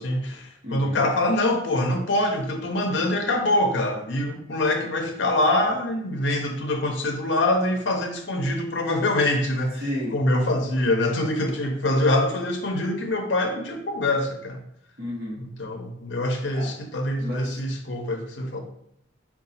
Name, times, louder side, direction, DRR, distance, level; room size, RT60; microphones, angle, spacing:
voice 1, 0.0-9.8 10.1-14.6 15.4-18.6, left 1 dB, 70° left, 4 dB, 0.5 m, -24 dB
voice 2, 0.6-1.0 9.8-10.1 15.0-15.4 16.5-16.7 17.2-17.5, left 1 dB, 55° right, -4 dB, 1.0 m, -31 dB
3.8 x 2.3 x 4.0 m, 0.71 s
head